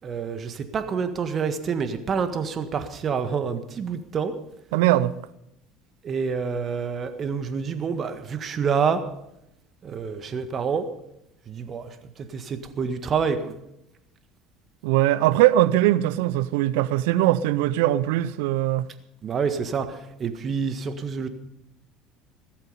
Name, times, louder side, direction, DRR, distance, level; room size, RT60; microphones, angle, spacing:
voice 1, 0.0-4.3 6.0-9.0 9.8-10.8 11.5-11.9 12.3-13.5 19.2-19.8 20.2-21.3, right 6 dB, 40° right, 1.7 m, -27 dB
voice 2, 4.7-5.1 14.8-18.9, right 14 dB, 70° right, 0.6 m, -21 dB
16.0 x 14.0 x 5.5 m
hypercardioid pair, 65°, 0 cm